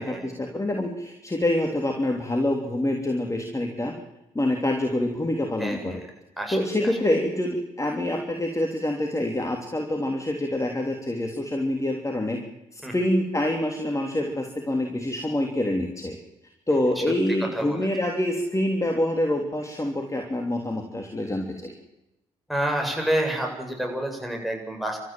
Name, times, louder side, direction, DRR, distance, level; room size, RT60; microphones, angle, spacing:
voice 1, 0.0-3.9 4.4-6.0 6.5-12.4 12.7-16.2 16.7-21.7, left 1 dB, 20° left, 3 dB, 3.5 m, -26 dB
voice 2, 5.6-6.0 6.4-6.9 12.8-13.0 17.0-17.1 17.4-17.9 22.5-25.0, right 1 dB, ahead, 1 dB, 7.9 m, -29 dB
29.0 x 14.0 x 7.7 m, 0.93 s
hypercardioid pair, 45°, 16 cm